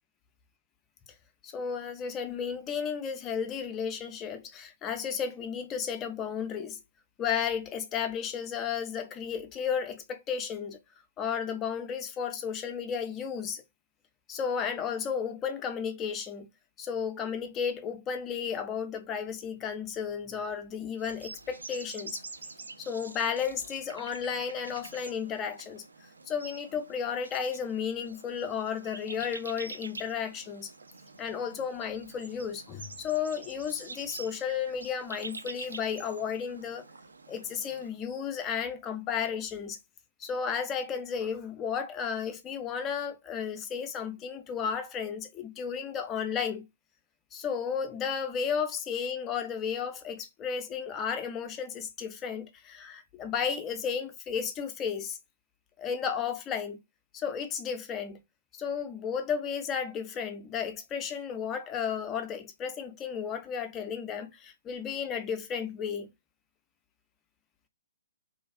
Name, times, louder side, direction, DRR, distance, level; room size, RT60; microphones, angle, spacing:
voice 1, 1.4-6.8 7.2-10.8 11.2-13.6 14.3-16.5 16.8-22.2 22.8-25.8 26.3-30.7 31.2-36.8 37.3-39.8 40.2-46.7 47.3-55.2 55.8-56.8 57.1-58.2 58.6-66.1, left 7 dB, 20° left, 0.4 m, -33 dB
sound 1, 21.0-37.9, right 3 dB, 70° right, 0.3 m, -47 dB
2.5 x 2.2 x 2.2 m
figure-of-eight pair, 125°, 0 cm